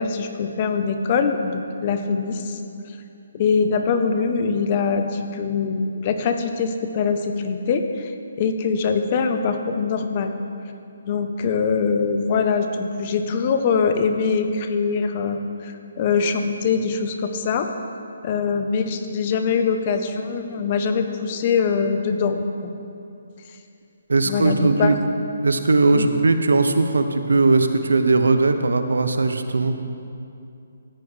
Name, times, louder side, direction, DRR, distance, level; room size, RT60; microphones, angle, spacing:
voice 1, 0.0-2.6 3.3-10.3 11.1-17.7 18.2-22.7 24.3-25.0 25.9-26.1, left 5 dB, 35° left, 7 dB, 0.8 m, -23 dB
voice 2, 24.1-24.9 25.4-29.7, right 3 dB, 85° right, 8 dB, 0.7 m, -19 dB
14.5 x 9.4 x 3.3 m, 2.6 s
hypercardioid pair, 155°, 0 cm